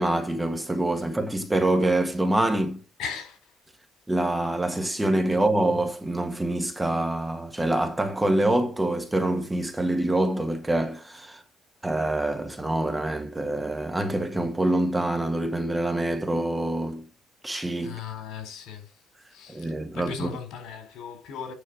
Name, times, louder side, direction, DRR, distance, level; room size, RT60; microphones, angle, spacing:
voice 1, 0.0-2.8 4.1-11.4 11.8-17.1 17.4-18.0 19.5-20.3, right 1 dB, 10° right, 1.5 m, -25 dB
voice 2, 3.0-3.4 17.8-18.9 19.3-21.5, left 6 dB, 80° left, 4.0 m, -37 dB
9.7 x 5.4 x 5.1 m
cardioid pair, 155°, 0 cm